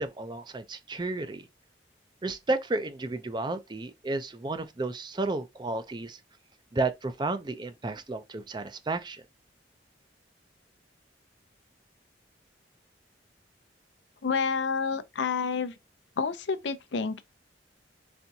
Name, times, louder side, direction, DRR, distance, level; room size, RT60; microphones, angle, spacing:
voice 1, 0.0-1.5 2.2-6.2 6.7-9.2, right 2 dB, 25° right, 0.5 m, -32 dB
voice 2, 14.2-15.7 16.2-17.2, left 5 dB, 85° left, 0.5 m, -29 dB
4.3 x 3.5 x 2.7 m
head